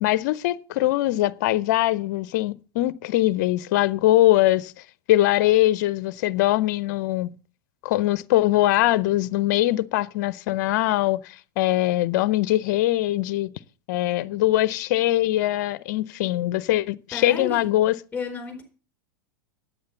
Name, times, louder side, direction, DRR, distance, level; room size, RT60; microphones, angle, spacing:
voice 1, 0.0-4.7 5.1-7.3 7.8-13.5 13.9-17.9, left 15 dB, 55° left, 0.6 m, -22 dB
voice 2, 17.1-17.7 18.1-18.6, left 5 dB, 15° left, 4.3 m, -32 dB
9.6 x 8.6 x 6.8 m
hypercardioid pair, 100°, 11 cm